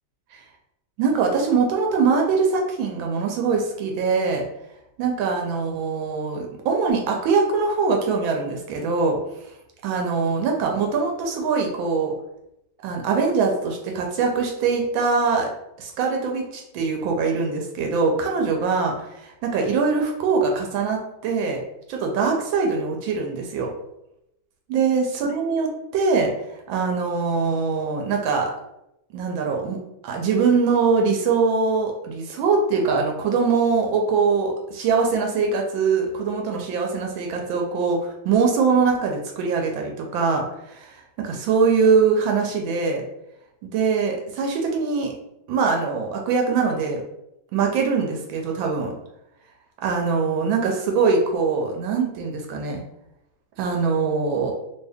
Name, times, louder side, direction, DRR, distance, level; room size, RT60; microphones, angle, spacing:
voice 1, 1.0-4.4 5.0-9.2 9.8-12.1 12.8-15.5 15.8-18.9 19.4-21.6 21.9-23.7 24.7-26.3 26.7-28.5 29.1-29.8 30.0-40.5 40.7-43.0 43.6-45.1 45.5-47.0 47.5-48.9 49.8-52.8 53.6-54.5, right 5 dB, 80° right, 2 dB, 1.3 m, -22 dB
2.9 x 2.7 x 3.4 m, 0.84 s
omnidirectional pair, 2.2 m